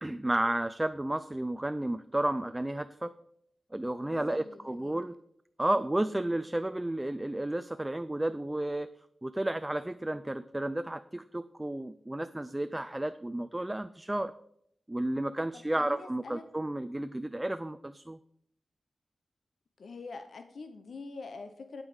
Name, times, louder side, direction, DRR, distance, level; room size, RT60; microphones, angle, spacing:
voice 1, 0.0-3.1 3.7-5.1 5.6-8.9 9.2-14.3 14.9-18.2, right 1 dB, 15° right, 12 dB, 0.3 m, -32 dB
voice 2, 4.1-5.0 6.1-6.3 15.5-16.4 19.8-21.8, left 4 dB, 75° left, 8 dB, 0.7 m, -45 dB
8.9 x 8.4 x 4.8 m, 0.72 s
wide cardioid pair, 120°, 0 cm